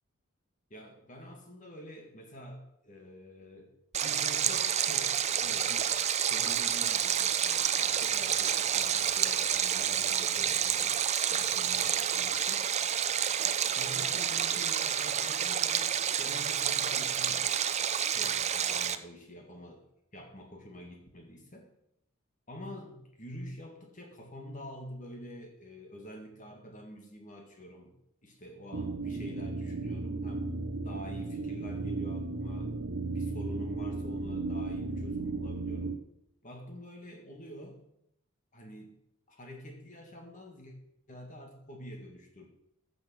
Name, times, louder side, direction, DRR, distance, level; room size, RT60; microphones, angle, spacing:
voice 1, 0.7-3.7 4.0-5.9 6.2-10.9 11.3-12.7 13.7-17.5 18.1-19.8 20.1-21.7 22.5-28.0 28.2-30.5 30.8-32.7 33.1-36.0 36.4-37.8 38.5-39.0 39.3-40.8 41.1-42.5, equal, 35° left, 3 dB, 1.9 m, -47 dB
Stream, 3.9-19.0, right 9 dB, 30° right, 0.5 m, -29 dB
sound 1, 28.7-36.0, right 3 dB, 55° right, 0.9 m, -35 dB
15.0 x 6.3 x 6.3 m, 0.76 s
head